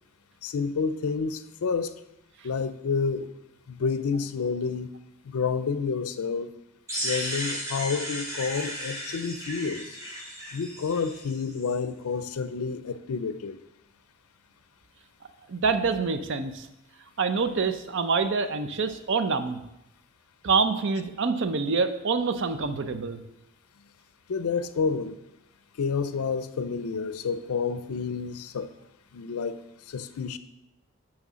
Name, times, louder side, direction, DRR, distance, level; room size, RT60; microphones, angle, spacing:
voice 1, 0.4-2.0 2.4-3.3 3.7-4.9 5.3-6.5 7.0-9.9 10.5-13.6 24.3-25.2 25.8-28.7 29.1-29.6 29.9-30.4, left 5 dB, 80° left, 12 dB, 0.4 m, -29 dB
sound 1, 6.9-11.7, equal, 15° right, 1.5 m, -35 dB
voice 2, 15.5-16.7 17.2-19.6 20.4-23.2, right 4 dB, 55° right, 10 dB, 0.5 m, -26 dB
9.3 x 3.2 x 6.2 m, 0.87 s
head